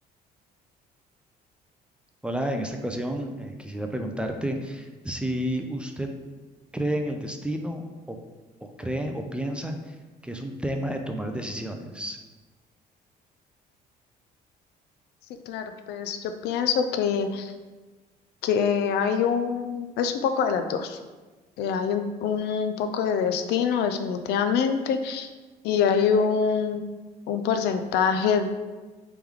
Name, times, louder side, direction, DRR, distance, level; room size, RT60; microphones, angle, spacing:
voice 1, 2.2-6.1 6.7-8.2 8.6-10.0 10.2-12.2, right 1 dB, 5° right, 4 dB, 0.3 m, -31 dB
voice 2, 15.5-17.5 18.4-21.0 21.6-25.3 25.6-26.8 27.3-28.5, left 6 dB, 80° left, 8 dB, 0.4 m, -25 dB
3.3 x 3.0 x 3.5 m, 1.3 s
cardioid pair, 110°, 17 cm